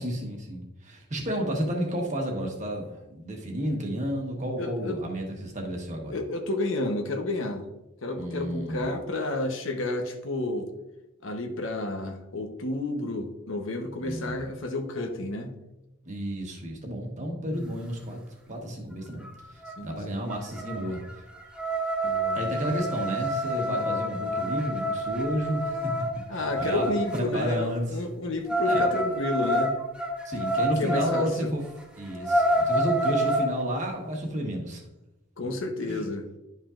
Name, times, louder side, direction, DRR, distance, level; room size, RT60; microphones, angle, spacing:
voice 1, 0.0-6.2 8.2-8.9 14.0-14.4 16.1-18.2 18.5-19.3 19.5-21.2 22.3-25.9 26.3-26.8 27.1-28.0 28.6-28.8 30.2-31.6 31.9-34.8 35.9-36.0, equal, 35° right, 0 dB, 1.2 m, -31 dB
voice 2, 4.6-5.0 6.1-7.7 8.0-10.7 11.2-15.5 17.4-17.7 19.8-20.2 22.0-22.4 23.7-23.9 26.3-29.8 30.8-31.5 35.4-36.3, left 2 dB, 65° left, 4 dB, 0.9 m, -31 dB
sound 1, 19.2-19.3 19.6-19.9 20.3-27.2 28.5-31.3 31.7-31.8 32.1-33.5, equal, 5° right, 0.7 m, -28 dB
11.0 x 5.5 x 2.5 m, 0.98 s
head